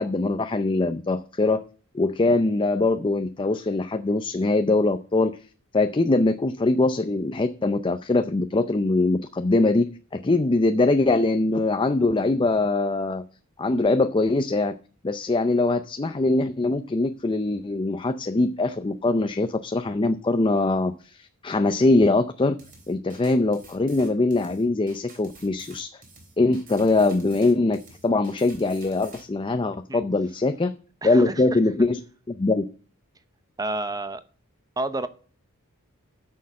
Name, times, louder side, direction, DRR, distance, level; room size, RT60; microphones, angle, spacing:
voice 1, 0.0-1.6 1.9-5.4 5.7-13.2 13.6-14.7 15.0-22.6 22.9-26.0 26.4-30.7 31.0-32.0 32.3-32.6, left 2 dB, 25° left, 0.5 m, -22 dB
sound 1, 22.6-29.2, right 3 dB, 40° right, 3.3 m, -49 dB
voice 2, 31.0-31.6 33.6-34.2 34.8-35.1, right 2 dB, 15° right, 0.7 m, -30 dB
9.3 x 6.5 x 7.5 m
head